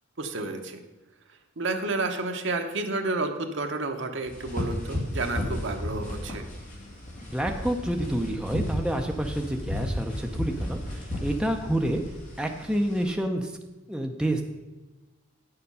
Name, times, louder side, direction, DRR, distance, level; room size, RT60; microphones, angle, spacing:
voice 1, 0.2-0.8 1.6-6.4, right 2 dB, 60° right, 6 dB, 0.9 m, -30 dB
sound 1, 4.3-13.0, left 1 dB, 40° left, 2.4 m, -34 dB
voice 2, 7.2-12.0 12.4-13.6 13.9-14.4, right 1 dB, 5° right, 3 dB, 0.6 m, -28 dB
9.3 x 6.8 x 5.5 m, 1.2 s
head